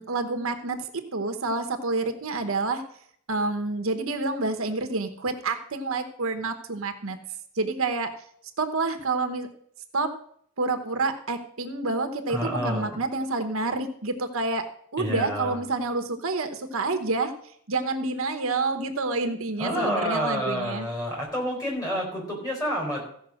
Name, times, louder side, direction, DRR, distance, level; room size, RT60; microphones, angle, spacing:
voice 1, 0.0-2.8 3.3-7.2 7.5-8.1 8.6-9.5 9.9-10.1 10.6-14.7 14.9-17.3 17.7-20.9, right 3 dB, 70° right, 6 dB, 1.0 m, -28 dB
voice 2, 12.3-13.0 15.0-15.6 19.6-23.0, equal, 15° left, -2 dB, 4.5 m, -29 dB
15.0 x 5.6 x 6.4 m, 0.65 s
head